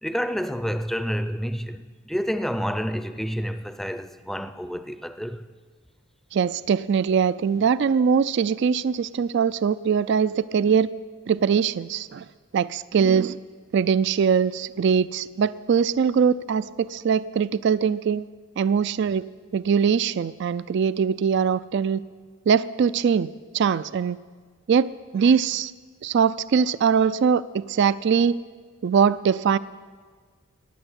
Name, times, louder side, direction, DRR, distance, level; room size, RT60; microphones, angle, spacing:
voice 1, 0.0-5.4, equal, ahead, 0.5 m, -29 dB
voice 2, 6.3-10.9 11.3-12.2 12.5-13.4 13.7-18.3 18.6-19.2 19.5-22.0 22.5-23.3 23.5-24.2 24.7-25.7 26.0-28.4 28.8-29.6, right 6 dB, 55° right, 0.3 m, -22 dB
15.5 x 10.5 x 8.0 m
head